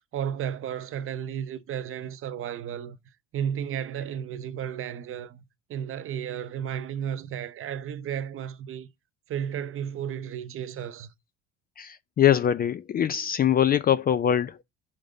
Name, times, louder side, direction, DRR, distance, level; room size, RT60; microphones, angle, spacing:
voice 1, 0.1-3.0 3.3-5.4 5.7-8.9 9.3-11.1, right 9 dB, 40° right, 0.8 m, -33 dB
voice 2, 11.8-14.6, left 10 dB, 30° left, 0.4 m, -23 dB
5.3 x 5.2 x 6.5 m
supercardioid pair, 105°, 33 cm